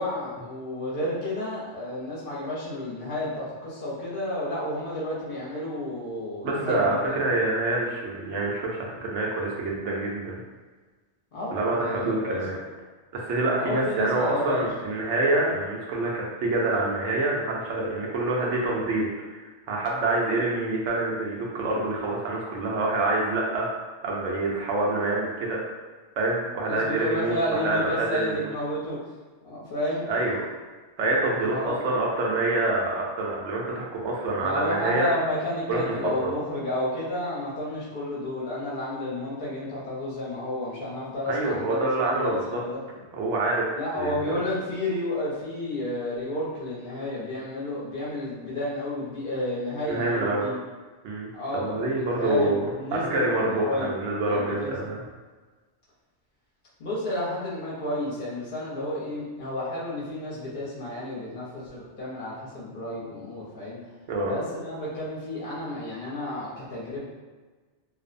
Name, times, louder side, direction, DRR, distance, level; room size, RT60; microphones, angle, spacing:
voice 1, 0.0-6.9 11.3-12.4 13.6-14.7 26.6-29.0 29.4-30.0 31.5-31.8 34.4-42.8 43.7-50.6 51.3-53.9 54.3-54.8 56.8-63.8 64.2-67.0, left 1 dB, 55° left, -7 dB, 0.9 m, -31 dB
voice 2, 6.4-10.4 11.5-12.6 13.1-23.7 24.0-25.6 26.2-28.5 30.1-30.4 31.0-35.1 35.7-36.3 41.3-42.6 43.1-43.7 43.9-44.4 49.9-50.5 51.0-51.3 51.5-55.0 64.1-64.4, right 2 dB, 85° right, -3 dB, 0.9 m, -26 dB
2.5 x 2.0 x 2.5 m, 1.4 s
omnidirectional pair, 1.2 m